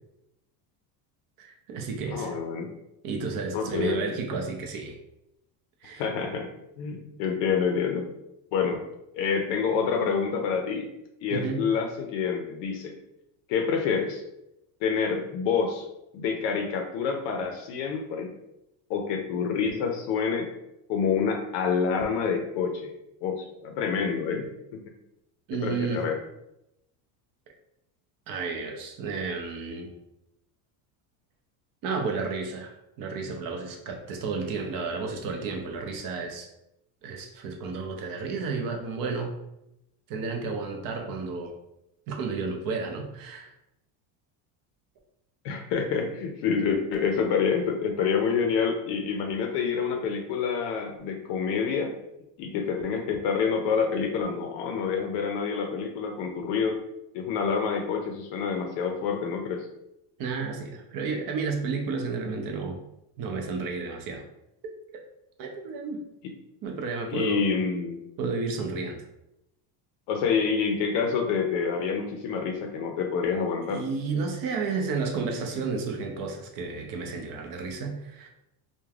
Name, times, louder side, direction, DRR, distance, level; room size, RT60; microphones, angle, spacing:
voice 1, 1.4-2.3 3.0-5.0 5.8-6.1 11.3-11.7 25.5-26.1 28.3-29.9 31.8-36.5 37.0-39.3 40.1-41.5 42.1-43.5 60.2-62.8 63.2-64.2 65.4-66.0 66.6-67.5 68.2-69.0 73.7-78.3, right 4 dB, 50° right, 3 dB, 0.6 m, -32 dB
voice 2, 2.1-2.7 3.5-4.1 6.0-6.5 6.8-8.1 8.5-8.8 9.1-10.9 11.2-12.9 13.5-14.2 14.8-15.9 16.1-18.3 18.9-20.5 20.9-22.9 23.2-24.4 24.7-24.8 25.6-26.2 45.4-51.9 52.4-56.8 57.1-59.7 67.1-68.0 70.1-73.8, left 6 dB, 65° left, 3 dB, 0.5 m, -27 dB
3.1 x 2.1 x 2.3 m, 0.85 s
cardioid pair, 135°, 46 cm